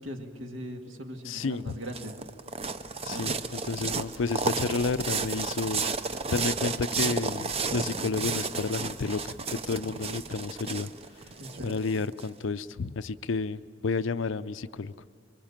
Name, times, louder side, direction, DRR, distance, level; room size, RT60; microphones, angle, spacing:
voice 1, 0.0-2.3 3.1-3.3 11.4-11.8, equal, 65° right, 3 dB, 2.2 m, -40 dB
voice 2, 1.2-1.7 3.0-5.8 6.3-10.9 11.6-14.9, left 4 dB, 65° left, 14 dB, 0.6 m, -31 dB
sound 1, 1.4-12.2, right 4 dB, 30° right, 0.7 m, -32 dB
27.0 x 23.0 x 7.4 m, 2.3 s
head